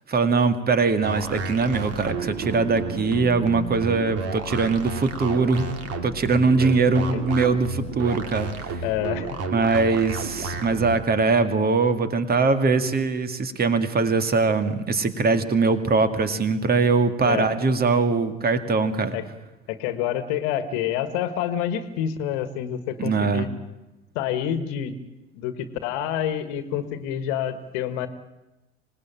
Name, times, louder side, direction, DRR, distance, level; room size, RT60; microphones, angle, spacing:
voice 1, 0.1-5.7 6.0-8.8 9.5-19.2 23.0-23.5, right 4 dB, 30° right, 9 dB, 2.2 m, -22 dB
sound 1, 1.0-11.0, right 3 dB, 45° right, 2.6 m, -32 dB
voice 2, 8.8-9.4 17.2-17.5 19.1-19.2 19.7-23.5 24.1-25.0 25.3-28.1, left 10 dB, 55° left, 12 dB, 1.7 m, -28 dB
26.0 x 18.5 x 8.9 m, 1.0 s
figure-of-eight pair, 65°, 33 cm